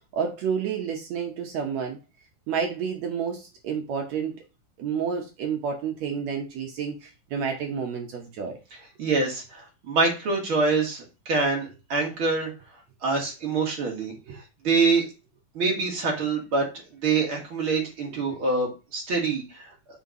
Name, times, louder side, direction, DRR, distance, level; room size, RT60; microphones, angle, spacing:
voice 1, 0.1-2.0 2.5-4.4 4.8-8.6 14.3-14.4 18.2-18.4, right 6 dB, 70° right, 2 dB, 2.0 m, -30 dB
voice 2, 9.0-12.5 13.0-15.0 15.5-16.7 17.0-19.7, right 4 dB, 50° right, 0 dB, 2.2 m, -25 dB
5.5 x 5.0 x 3.6 m, 0.29 s
omnidirectional pair, 3.6 m